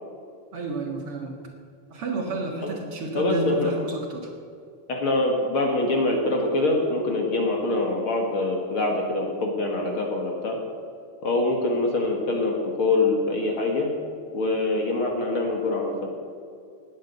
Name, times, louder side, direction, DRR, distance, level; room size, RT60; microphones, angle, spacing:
voice 1, 0.5-1.4 1.9-4.3, right 3 dB, 50° right, 1 dB, 2.2 m, -31 dB
voice 2, 3.1-3.7 4.9-10.6 11.2-13.9 14.3-16.1, left 2 dB, 50° left, 1 dB, 2.3 m, -24 dB
19.0 x 8.3 x 8.1 m, 2.3 s
omnidirectional pair, 3.4 m